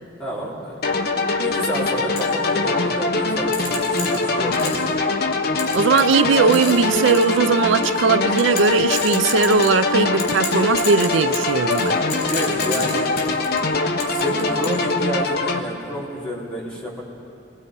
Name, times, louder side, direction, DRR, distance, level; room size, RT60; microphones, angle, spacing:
voice 1, 0.2-0.7 1.4-4.8 12.0-13.1 14.1-17.0, equal, 5° left, -7 dB, 4.5 m, -30 dB
sound 1, 0.8-15.6, left 3 dB, 55° left, 1.3 m, -22 dB
sound 2, 2.2-2.3 3.5-4.9 5.6-6.2 6.5-7.4 7.8-8.0 8.4-9.9 10.2-13.6 14.0-14.8, left 4 dB, 75° left, 5.8 m, -30 dB
voice 2, 5.7-12.0, right 5 dB, 85° right, 13 dB, 0.5 m, -19 dB
28.0 x 20.5 x 5.5 m, 2.6 s
head